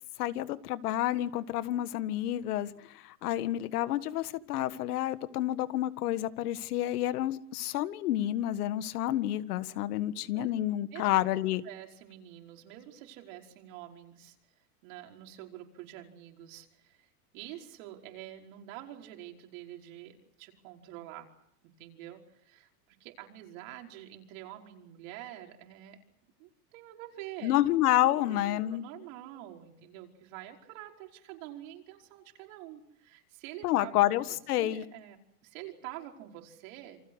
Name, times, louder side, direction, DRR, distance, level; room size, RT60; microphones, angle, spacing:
voice 1, 0.2-11.6 27.4-28.9 33.6-34.8, left 14 dB, 75° left, 13 dB, 1.7 m, -29 dB
voice 2, 11.6-14.4 14.8-21.3 21.6-26.0 26.4-27.6 28.0-33.9 34.6-37.0, right 13 dB, 55° right, 2 dB, 5.2 m, -47 dB
28.5 x 24.5 x 6.4 m, 0.74 s
supercardioid pair, 145°, 46 cm